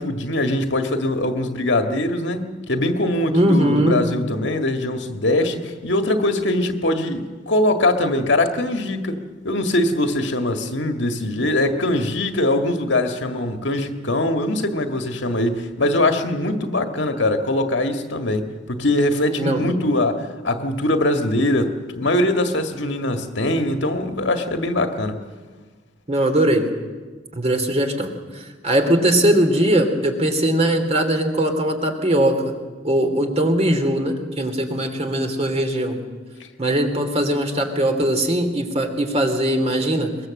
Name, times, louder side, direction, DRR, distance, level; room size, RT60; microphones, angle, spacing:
voice 1, 0.0-25.2, left 1 dB, 70° left, 6 dB, 1.8 m, -22 dB
voice 2, 3.3-4.0 19.4-19.6 26.1-26.7 27.3-32.5 32.8-36.0 36.6-40.1, right 1 dB, 35° right, 5 dB, 2.8 m, -20 dB
22.5 x 21.5 x 7.6 m, 1.4 s
head